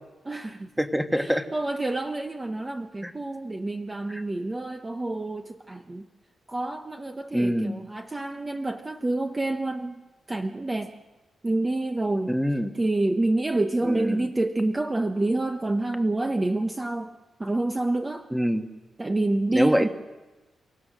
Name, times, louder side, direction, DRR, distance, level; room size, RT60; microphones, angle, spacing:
voice 1, 0.2-0.7 1.1-6.0 6.5-10.0 10.3-10.9 11.4-12.3 12.7-17.1 17.4-18.3 19.0-19.9, right 2 dB, 20° right, 5 dB, 1.0 m, -28 dB
voice 2, 0.8-1.5 3.0-3.1 4.1-4.2 7.3-7.7 12.3-12.7 13.8-14.3 18.3-18.6 19.5-19.9, equal, ahead, 6 dB, 1.4 m, -25 dB
30.0 x 16.5 x 6.4 m, 1.2 s
cardioid pair, 100°, 0 cm